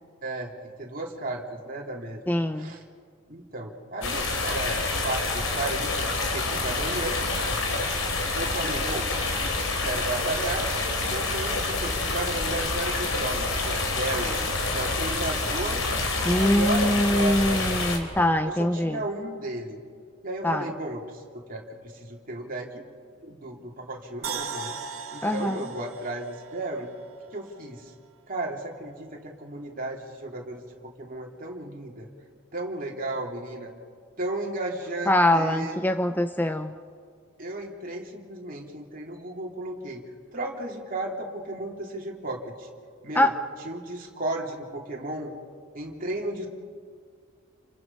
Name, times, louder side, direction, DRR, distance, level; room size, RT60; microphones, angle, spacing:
voice 1, 0.2-0.5 0.8-2.2 2.6-2.8 3.3-7.2 8.3-9.1 9.8-10.7 11.0-14.4 14.7-15.9 16.2-17.6 18.4-19.8 20.2-21.2 21.5-22.8 23.2-24.8 25.1-26.9 27.3-27.9 28.3-32.1 32.5-33.7 34.2-35.8 37.4-40.0 40.3-42.7 43.0-43.3 43.6-45.3 45.7-46.5, right 2 dB, 45° right, -1 dB, 3.1 m, -34 dB
voice 2, 2.3-2.7 16.2-19.0 20.4-20.7 25.2-25.7 35.1-36.7 43.2-43.3, left 1 dB, 10° left, 8 dB, 0.6 m, -23 dB
sound 1, 4.0-18.0, left 3 dB, 75° left, 3.7 m, -27 dB
sound 2, 24.2-27.4 27.8-27.9, right 6 dB, 90° right, 1.8 m, -38 dB
29.5 x 25.0 x 5.5 m, 2.1 s
head